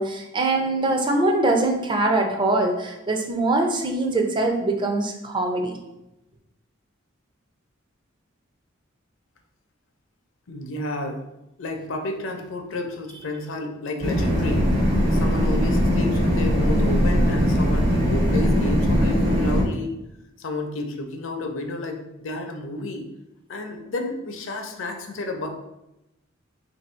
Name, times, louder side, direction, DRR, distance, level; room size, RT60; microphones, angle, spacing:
voice 1, 0.0-5.8, right 2 dB, 25° right, 2 dB, 0.4 m, -23 dB
voice 2, 10.5-11.2 11.6-14.7 15.1-19.9 20.4-23.1 23.5-25.5, left 2 dB, 65° left, 4 dB, 0.5 m, -31 dB
sound 1, 14.0-19.6, equal, 50° right, 1.2 m, -20 dB
3.0 x 2.6 x 4.3 m, 0.92 s
head